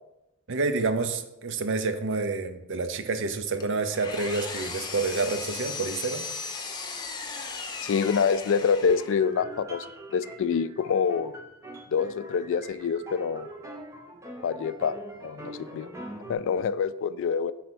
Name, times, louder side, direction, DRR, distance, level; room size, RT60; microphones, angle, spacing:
voice 1, 0.5-6.3, right 3 dB, 60° right, 9 dB, 0.6 m, -28 dB
Engine, 3.6-9.3, left 4 dB, 20° left, 0.7 m, -36 dB
voice 2, 7.8-9.8 10.1-11.3 11.9-13.5 14.4-14.9 15.2-15.9 16.3-17.5, left 6 dB, 65° left, 15 dB, 0.3 m, -26 dB
sound 1, 8.8-16.3, right 1 dB, 15° right, 0.9 m, -43 dB
5.5 x 4.2 x 6.0 m, 0.91 s
head